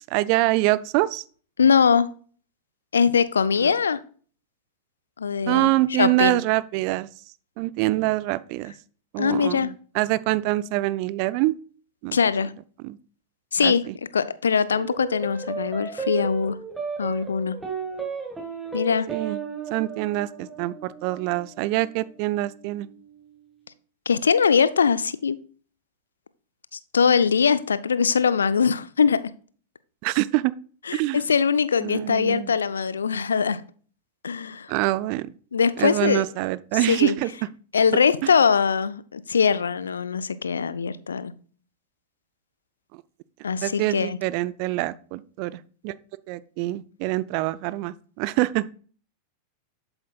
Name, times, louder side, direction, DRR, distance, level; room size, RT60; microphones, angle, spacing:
voice 1, 0.1-1.2 3.6-3.7 5.5-7.1 7.6-8.7 9.1-11.6 12.0-12.2 12.8-13.0 13.6-13.9 19.1-19.4 19.7-22.9 30.0-30.5 30.9-31.2 31.8-32.5 34.7-35.3 35.8-37.3 38.2-38.3 42.9-43.0 43.6-45.9 46.3-48.6, right 18 dB, 45° right, 18 dB, 0.4 m, -25 dB
voice 2, 1.6-2.1 2.9-4.0 5.2-5.7 6.0-6.4 9.2-9.7 12.1-12.5 13.5-13.9 14.1-16.6 17.0-17.6 18.7-19.1 24.1-25.4 26.9-29.2 30.9-33.6 34.2-34.7 35.5-36.3 36.9-37.2 37.7-41.3 43.4-44.2, left 6 dB, 70° left, 15 dB, 0.5 m, -22 dB
sound 1, 14.7-23.3, right 6 dB, 10° right, 1.7 m, -35 dB
7.9 x 7.4 x 2.3 m, 0.42 s
figure-of-eight pair, 90°, 0 cm